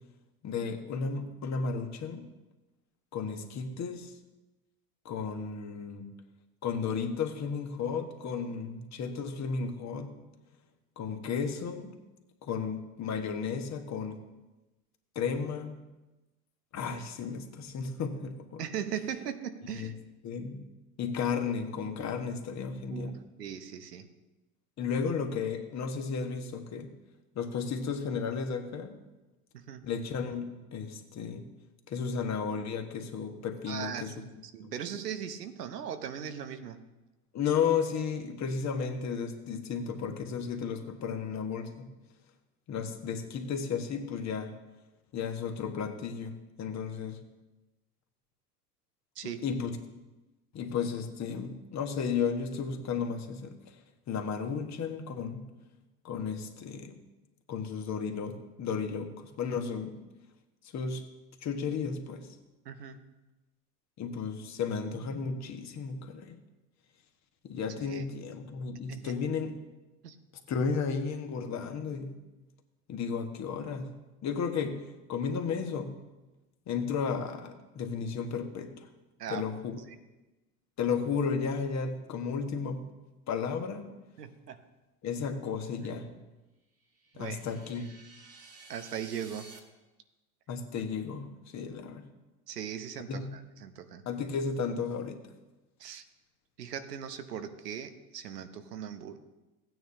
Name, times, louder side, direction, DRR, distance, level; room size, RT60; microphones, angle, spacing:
voice 1, 0.4-2.3 3.1-4.1 5.0-6.1 6.6-10.1 11.0-12.0 12.4-14.2 15.1-15.7 16.7-18.6 19.7-19.9 20.2-20.6 21.0-23.1 24.8-26.9 27.3-29.0 29.8-31.5 31.9-34.1 34.6-34.7 37.3-41.9 42.7-44.5 45.1-47.2 49.2-49.8 50.5-53.8 54.1-55.4 56.0-56.9 57.5-60.0 60.7-61.0 61.4-62.3 64.0-66.4 67.4-69.6 70.5-72.1 72.9-73.9 74.2-74.8 75.1-75.9 76.7-78.9 79.3-79.8 80.8-82.8 83.3-83.9 85.0-86.1 87.2-87.9 90.5-92.1 93.1-93.3 94.1-95.2, left 6 dB, 35° left, 5 dB, 1.3 m, -33 dB
voice 2, 18.6-19.9 22.9-24.1 29.5-29.9 33.7-34.1 34.4-36.8 49.2-49.4 62.6-63.0 67.8-68.1 68.9-69.1 70.0-70.2 79.2-79.5 79.9-80.0 84.2-84.6 87.1-87.4 88.7-89.5 92.5-94.0 95.8-96.0 96.6-99.2, right 8 dB, 85° right, 9 dB, 1.0 m, -39 dB
sound 1, 86.8-89.6, right 3 dB, 30° right, 1.8 m, -53 dB
15.5 x 9.3 x 2.8 m, 1.1 s
hypercardioid pair, 85°, 46 cm